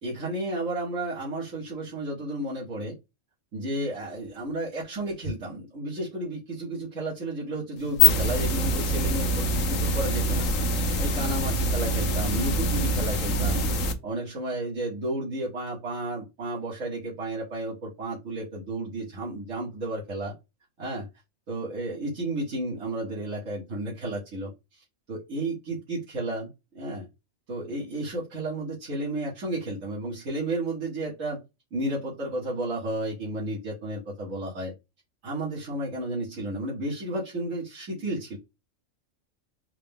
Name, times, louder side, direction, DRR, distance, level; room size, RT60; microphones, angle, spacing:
voice 1, 0.0-3.0 3.5-10.5 11.0-13.6 14.0-20.3 20.8-21.1 21.5-26.5 26.7-27.1 27.5-31.4 31.7-34.7 35.2-38.4, right 1 dB, 80° right, -7 dB, 1.9 m, -32 dB
sound 1, 7.8-13.9, left 1 dB, 85° left, 1.2 m, -24 dB
4.7 x 2.2 x 3.5 m, 0.24 s
omnidirectional pair, 1.3 m